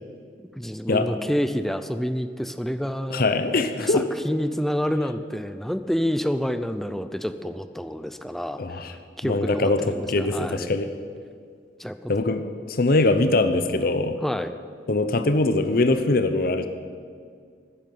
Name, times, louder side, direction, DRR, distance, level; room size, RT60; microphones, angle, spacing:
voice 1, 0.5-3.2 3.8-8.9 9.2-10.7 11.8-12.1 14.2-14.5, equal, ahead, 10 dB, 0.5 m, -28 dB
voice 2, 3.1-4.1 8.6-8.9 9.2-10.9 12.1-14.2 14.9-16.7, left 2 dB, 55° left, 9 dB, 0.9 m, -22 dB
12.5 x 10.0 x 9.3 m, 2.1 s
head